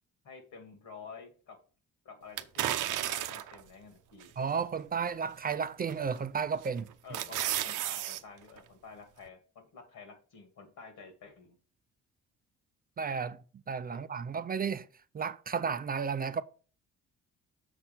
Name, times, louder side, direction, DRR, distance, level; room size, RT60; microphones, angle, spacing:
voice 1, 0.2-1.6 2.0-4.3 7.0-11.6 13.9-14.1, left 5 dB, 80° left, 2.4 m, -50 dB
sound 1, 2.4-3.6 4.2-4.3 5.9-6.2 6.6-8.2 8.6-8.7, right 12 dB, 85° right, 0.7 m, -33 dB
voice 2, 4.4-6.9 13.0-13.4 13.7-14.9 15.1-16.4, right 6 dB, 30° right, 0.4 m, -33 dB
6.6 x 4.3 x 5.9 m
cardioid pair, 90°, 30 cm